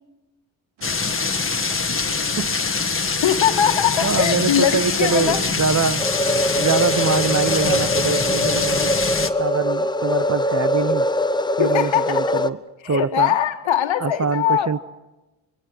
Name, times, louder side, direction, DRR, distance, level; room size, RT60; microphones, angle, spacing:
sound 1, 0.8-9.3, left 4 dB, 25° left, 1.7 m, -24 dB
sound 2, 0.8-6.0, right 5 dB, 80° right, 2.6 m, -45 dB
voice 1, 3.2-5.4 11.6-12.4 12.8-14.7, left 10 dB, 70° left, 1.9 m, -21 dB
voice 2, 4.0-6.0 6.5-8.9 9.4-11.1 11.6-12.6 12.9-13.3 14.0-14.8, right 5 dB, 35° right, 1.0 m, -23 dB
sound 3, 6.0-12.5, left 1 dB, 10° left, 0.9 m, -22 dB
25.5 x 22.5 x 6.2 m
supercardioid pair, 55°, 48 cm